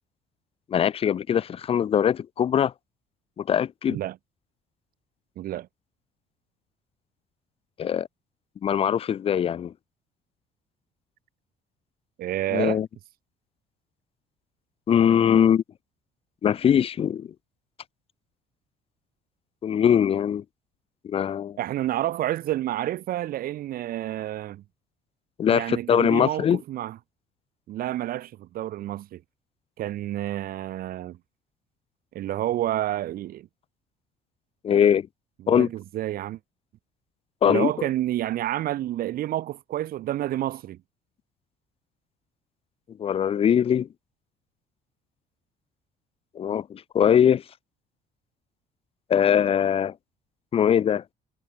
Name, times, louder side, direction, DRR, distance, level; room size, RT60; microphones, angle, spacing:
voice 1, 0.7-2.7 3.4-4.0 7.8-8.1 8.6-9.7 12.5-12.9 14.9-15.6 16.4-17.3 19.6-20.4 21.0-21.6 25.4-26.6 34.6-35.1 35.5-35.7 37.4-37.9 43.0-43.9 46.4-47.4 49.1-49.9 50.5-51.0, left 9 dB, 35° left, 0.5 m, -21 dB
voice 2, 5.4-5.7 12.2-12.8 21.6-24.6 25.5-27.0 27.7-29.2 29.8-31.2 32.1-33.5 35.4-36.4 37.4-40.8, right 13 dB, 60° right, 0.9 m, -29 dB
cardioid pair, 120°, 17 cm